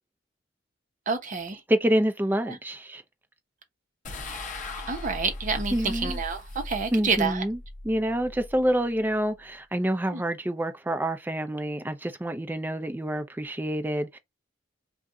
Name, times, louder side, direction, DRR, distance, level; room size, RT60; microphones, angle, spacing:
voice 1, 1.1-1.6 2.5-2.6 4.9-7.4 10.1-10.2, right 4 dB, 45° right, 0.8 m, -28 dB
voice 2, 1.7-3.0 5.7-6.2 6.9-7.6 7.8-14.2, right 1 dB, 10° right, 0.4 m, -27 dB
sound 1, 4.0-9.4, left 2 dB, 40° left, 0.7 m, -38 dB
2.5 x 2.3 x 3.7 m
head